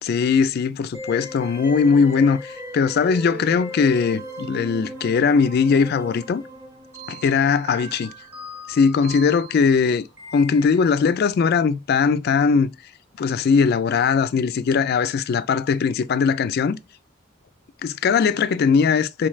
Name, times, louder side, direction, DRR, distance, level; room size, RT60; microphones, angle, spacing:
voice 1, 0.0-6.4 7.1-8.1 8.7-10.1 10.3-12.7 13.2-16.8 17.8-19.3, left 5 dB, 50° left, 0.3 m, -20 dB
sound 1, 0.9-11.1, right 1 dB, 10° right, 0.7 m, -38 dB
3.9 x 3.1 x 2.4 m
head